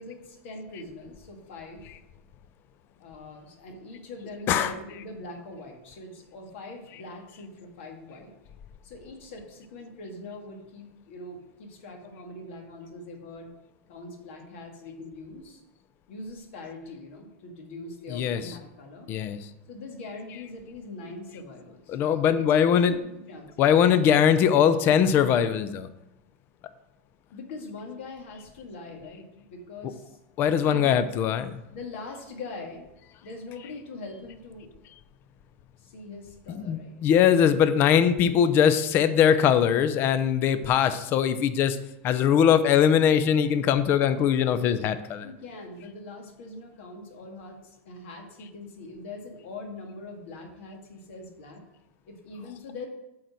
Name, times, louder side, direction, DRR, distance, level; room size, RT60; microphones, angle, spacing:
voice 1, 0.0-1.8 3.0-8.3 8.8-13.5 13.9-15.6 16.1-19.1 19.7-22.0 22.5-23.5 27.3-30.2 30.6-31.0 31.7-32.9 33.2-34.7 35.8-37.0 45.2-51.6 52.1-52.9, left 2 dB, 70° left, 2 dB, 1.9 m, -42 dB
voice 2, 19.1-19.4 21.9-23.0 23.6-25.9 30.4-31.6 36.5-41.8 42.0-45.3, left 8 dB, 30° left, 11 dB, 0.5 m, -21 dB
8.5 x 4.0 x 6.2 m, 0.91 s
supercardioid pair, 150°, 7 cm